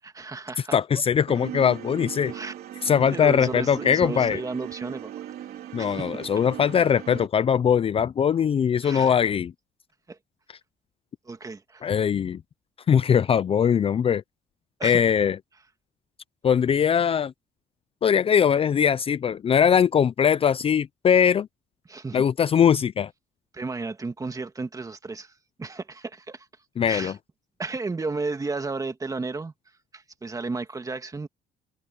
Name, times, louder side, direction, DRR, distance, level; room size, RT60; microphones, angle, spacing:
voice 1, 0.2-1.0 2.3-2.5 3.1-5.1 5.8-6.1 8.8-9.2 10.1-10.2 11.3-11.9 14.8-15.1 21.9-22.2 23.5-26.5 26.9-27.2 27.6-29.5 29.9-31.3, right 3 dB, 20° right, 2.1 m, -33 dB
voice 2, 0.7-2.3 2.8-4.4 5.7-9.5 11.8-12.4 12.9-14.2 14.8-15.4 16.4-17.3 18.0-21.5 22.1-23.1 26.8-27.1, left 8 dB, 35° left, 0.5 m, -21 dB
sound 1, 1.3-7.3, right 11 dB, 65° right, 3.5 m, -38 dB
cardioid pair, 110°, 17 cm